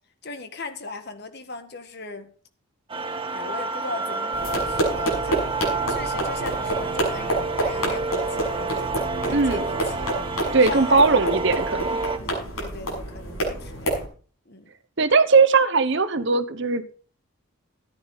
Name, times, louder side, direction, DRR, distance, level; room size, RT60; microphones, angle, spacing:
voice 1, 0.2-2.3 3.3-5.5 5.9-8.9 9.2-10.1 10.6-11.9 12.6-14.0 14.4-14.7, left 3 dB, 50° left, 8 dB, 1.6 m, -38 dB
sound 1, 2.9-12.2, right 3 dB, 25° right, 1.4 m, -29 dB
sound 2, 4.3-14.1, right 1 dB, 75° left, 6.7 m, -28 dB
voice 2, 9.3-9.6 10.5-12.0 15.0-16.9, right 4 dB, 55° right, 12 dB, 1.0 m, -19 dB
14.0 x 11.0 x 4.1 m, 0.41 s
head